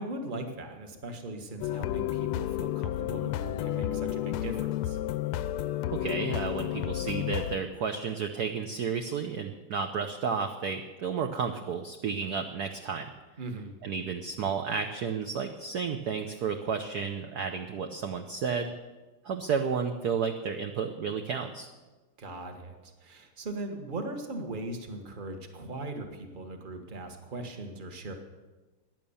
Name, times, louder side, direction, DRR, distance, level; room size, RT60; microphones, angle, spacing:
voice 1, 0.0-5.0 13.4-13.7 22.2-28.1, right 2 dB, 25° right, 5 dB, 1.3 m, -39 dB
bells dance, 1.6-7.6, left 13 dB, 85° left, 1.5 m, -31 dB
voice 2, 5.9-13.1 13.8-18.7 19.2-21.7, right 6 dB, 60° right, 6 dB, 1.1 m, -32 dB
15.5 x 10.5 x 7.1 m, 1.2 s
omnidirectional pair, 2.4 m